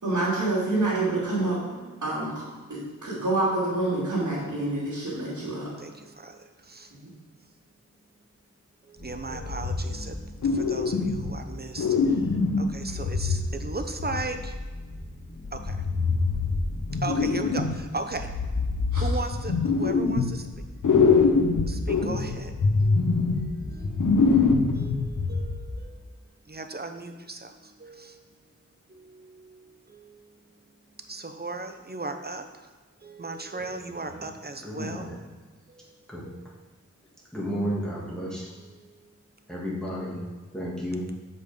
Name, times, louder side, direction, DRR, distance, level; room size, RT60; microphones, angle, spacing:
voice 1, 0.0-1.6 2.0-2.4 2.7-5.7 7.0-7.1 18.9-19.0, right 2 dB, 80° right, -11 dB, 2.8 m, -27 dB
voice 2, 0.6-1.0 1.7-2.1 2.5-3.1 5.8-6.9 8.8-14.6 15.5-15.9 16.9-18.6 18.9-20.5 21.3-28.2 28.9-32.7 33.0-35.1 35.7-36.7 37.5-39.1, right 3 dB, 30° right, 7 dB, 0.8 m, -38 dB
sound 1, 9.0-24.9, left 1 dB, 40° left, 2.4 m, -45 dB
sound 2, 9.3-10.2 10.4-11.4 11.8-14.6 15.4-17.8 18.1-20.6 20.8-25.8, left 4 dB, 90° left, 0.8 m, -24 dB
voice 3, 34.6-35.2 36.1-36.2 37.3-38.5 39.5-40.2 40.5-41.1, equal, ahead, -6 dB, 2.6 m, -32 dB
7.1 x 5.4 x 5.3 m, 1.3 s
wide cardioid pair, 55°, 30 cm